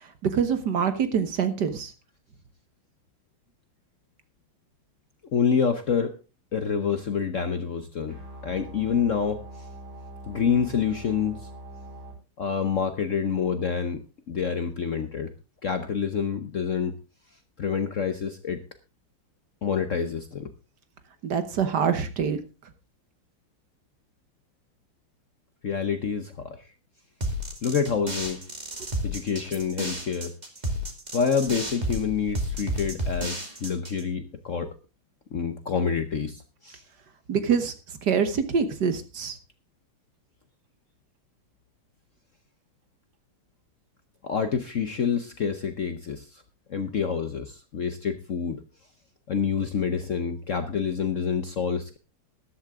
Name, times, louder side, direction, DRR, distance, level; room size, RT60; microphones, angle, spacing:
voice 1, 0.2-1.9 21.2-22.4 37.3-37.7 38.0-39.4, right 6 dB, 60° right, 10 dB, 1.7 m, -25 dB
voice 2, 5.3-6.2 6.5-9.4 10.3-11.4 12.4-15.3 15.6-17.0 17.6-18.6 19.6-20.5 25.6-26.6 27.6-28.4 29.0-30.3 30.6-30.7 31.1-34.7 35.3-36.8 44.2-46.4 46.7-48.6 49.3-52.0, left 6 dB, 50° left, 9 dB, 1.0 m, -27 dB
sound 1, 8.1-12.1, right 1 dB, 85° right, 5.9 m, -42 dB
sound 2, 27.2-34.0, equal, 20° right, 2.4 m, -31 dB
13.5 x 11.5 x 3.7 m, 0.30 s
omnidirectional pair, 2.2 m